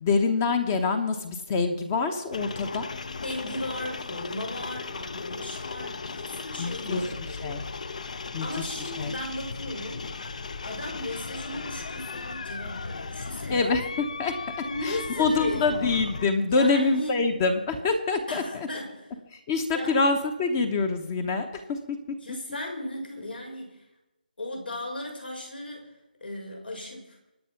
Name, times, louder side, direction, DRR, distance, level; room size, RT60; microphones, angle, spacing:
voice 1, 0.0-2.9 6.6-7.0 7.4-7.6 8.3-8.5 9.0-9.1 13.5-14.3 14.8-18.4 19.3-22.0, left 4 dB, 15° left, 9 dB, 0.9 m, -25 dB
sound 1, 2.3-16.3, left 4 dB, 50° left, 0.8 m, -37 dB
voice 2, 3.2-10.1 10.6-13.7 14.6-15.7 16.5-17.2 18.3-19.1 19.7-19.9 22.2-23.9 24.4-25.9 26.2-27.2, left 1 dB, 90° left, 1 dB, 5.9 m, -36 dB
24.5 x 9.3 x 5.8 m, 0.97 s
figure-of-eight pair, 170°, 5 cm